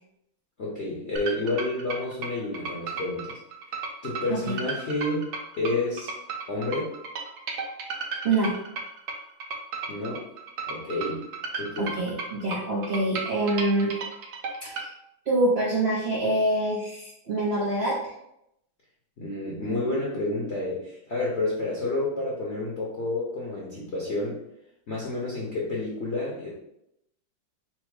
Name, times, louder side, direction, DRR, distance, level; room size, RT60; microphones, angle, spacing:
voice 1, 0.6-3.4 4.0-5.3 5.6-6.1 6.5-6.9 9.9-10.2 10.7-11.3 11.6-12.0 19.2-24.4 24.9-26.5, left 2 dB, 50° left, -5 dB, 0.8 m, -30 dB
sound 1, 1.2-14.9, right 4 dB, 65° right, 1.0 m, -34 dB
voice 2, 11.8-14.0 14.6-14.9 15.3-18.1, right 1 dB, 85° right, -5 dB, 0.5 m, -25 dB
4.4 x 2.0 x 4.6 m, 0.80 s
omnidirectional pair, 2.1 m